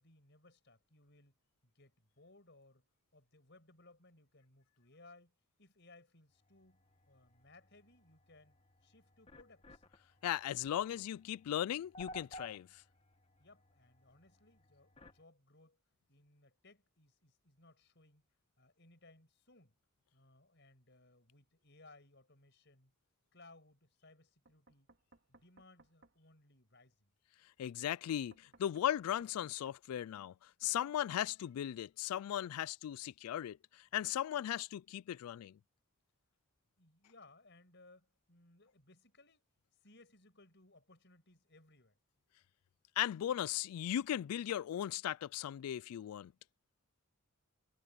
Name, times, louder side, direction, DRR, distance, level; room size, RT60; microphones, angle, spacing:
voice 1, 0.0-1.4 1.6-2.9 3.1-9.8 13.4-15.8 16.1-18.3 18.6-19.8 20.1-22.9 23.3-24.9 25.3-27.1 36.8-39.5 39.8-42.0, left 2 dB, 50° left, 6.0 m, -63 dB
sound 1, 6.3-15.2, left 1 dB, 25° left, 1.6 m, -57 dB
voice 2, 10.2-12.8 27.6-35.6 43.0-46.3, left 11 dB, 85° left, 0.3 m, -37 dB
Knock, 24.4-26.2 28.1-29.8, right 3 dB, 55° right, 2.7 m, -66 dB
head